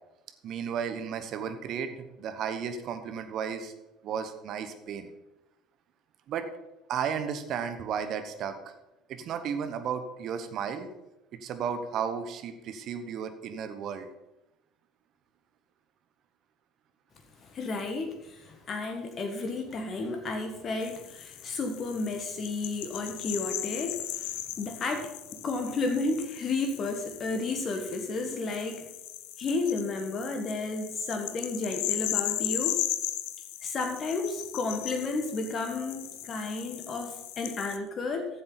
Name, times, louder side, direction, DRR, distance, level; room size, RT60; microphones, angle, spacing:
voice 1, 0.4-3.7 4.0-5.1 6.3-6.5 6.9-8.7 9.1-10.9 11.4-14.1, right 7 dB, 50° right, 8 dB, 1.2 m, -34 dB
voice 2, 17.4-28.9 29.4-32.8 33.6-38.3, left 3 dB, 40° left, 4 dB, 1.5 m, -32 dB
sound 1, 20.8-37.8, left 14 dB, 65° left, 0.6 m, -37 dB
14.0 x 7.5 x 4.1 m, 0.98 s
figure-of-eight pair, 65°, 0 cm